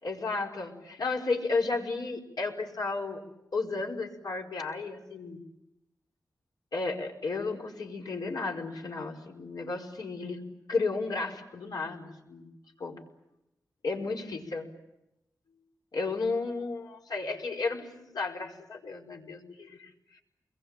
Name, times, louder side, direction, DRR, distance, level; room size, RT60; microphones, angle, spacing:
voice 1, 0.0-3.2 3.5-5.4 6.7-10.4 10.7-12.5 12.8-13.0 13.8-14.7 15.9-20.2, left 3 dB, 80° left, 1 dB, 5.2 m, -33 dB
29.0 x 22.5 x 9.0 m, 0.91 s
wide cardioid pair, 75°, 7 cm